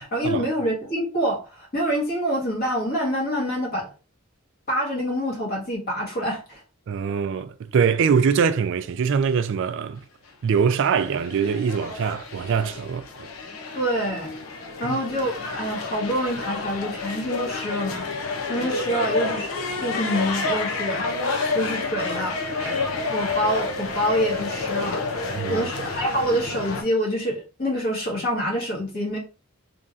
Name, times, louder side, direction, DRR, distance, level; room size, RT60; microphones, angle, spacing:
voice 1, 0.0-3.9 4.7-6.6 13.7-14.3 14.8-19.5 19.8-21.1 21.5-22.4 22.9-25.0 25.5-29.2, equal, 50° left, 1.7 m, -26 dB
voice 2, 6.9-10.0 10.4-13.3 14.9-15.0 22.6-22.7 25.4-25.7, right 6 dB, 65° right, 0.3 m, -23 dB
sound 1, 10.7-26.8, left 3 dB, 85° left, 0.8 m, -29 dB
3.5 x 3.0 x 2.6 m
head